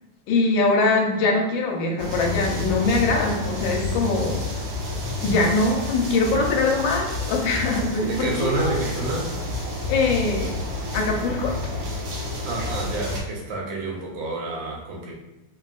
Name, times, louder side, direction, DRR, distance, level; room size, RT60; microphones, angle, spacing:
voice 1, 0.3-4.4 5.2-8.8 9.9-10.5 10.9-11.5, left 3 dB, 80° left, 0 dB, 1.4 m, -22 dB
sound 1, 2.0-13.2, left 2 dB, 65° right, 1.0 m, -29 dB
voice 2, 8.0-9.3 12.4-15.1, right 2 dB, 80° right, -2 dB, 1.5 m, -29 dB
3.4 x 2.5 x 2.3 m, 1.0 s
omnidirectional pair, 2.1 m